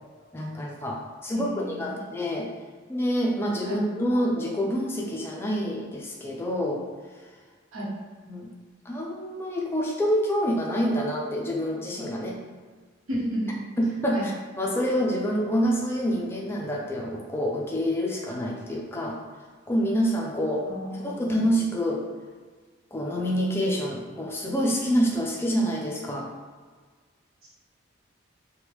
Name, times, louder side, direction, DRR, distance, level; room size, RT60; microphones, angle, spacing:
voice 1, 0.3-2.5 2.9-6.8 8.3-8.5 8.9-12.4 13.8-14.3 14.6-19.2 19.7-20.7 20.9-22.0 22.9-26.3, equal, 10° left, -2 dB, 0.4 m, -27 dB
voice 2, 1.3-2.0 3.6-3.8 7.7-7.9 13.1-13.6 14.1-14.3 20.6-21.3 27.4-27.5, equal, 85° right, -6 dB, 0.9 m, -32 dB
3.5 x 2.2 x 3.0 m, 1.5 s
head